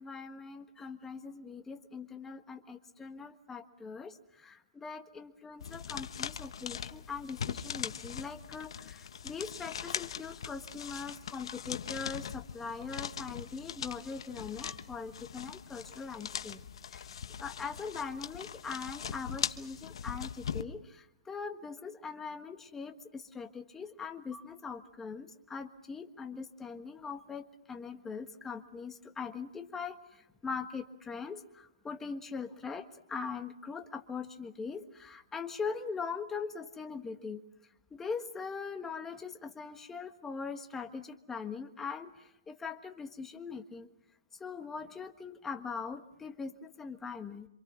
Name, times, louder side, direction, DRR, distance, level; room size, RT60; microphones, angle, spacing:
voice 1, 0.0-4.2 4.4-16.6 16.9-17.1 17.4-30.0 30.4-37.4 37.9-42.1 42.5-43.9 44.4-47.5, left 5 dB, 10° left, 7 dB, 1.4 m, -41 dB
sound 1, 5.6-20.6, left 8 dB, 70° left, 1.1 m, -41 dB
27.5 x 25.5 x 6.1 m, 0.87 s
hypercardioid pair, 140°, 3 cm